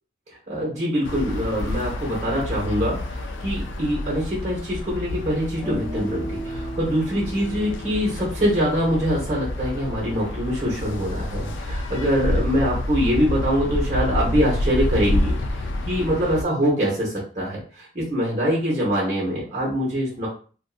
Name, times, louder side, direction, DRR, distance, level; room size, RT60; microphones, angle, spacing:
voice 1, 0.5-20.3, equal, 40° right, -6 dB, 0.9 m, -24 dB
sound 1, 1.0-16.4, left 1 dB, 85° left, 0.3 m, -28 dB
Guitar, 5.6-9.6, right 1 dB, 30° left, 0.5 m, -36 dB
2.5 x 2.3 x 2.4 m, 0.39 s
head